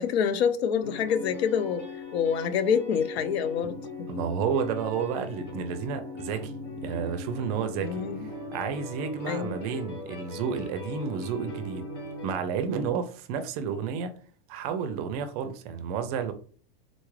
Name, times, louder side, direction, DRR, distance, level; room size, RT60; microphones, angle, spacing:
voice 1, 0.0-3.8 7.8-8.3 9.3-9.6, left 7 dB, 85° left, 0.6 m, -27 dB
sound 1, 0.8-12.3, left 3 dB, 45° left, 1.4 m, -39 dB
voice 2, 4.1-8.0 8.5-11.9 12.2-14.1 14.5-16.3, right 7 dB, 40° right, 0.4 m, -31 dB
3.9 x 2.3 x 3.1 m
supercardioid pair, 160°, 31 cm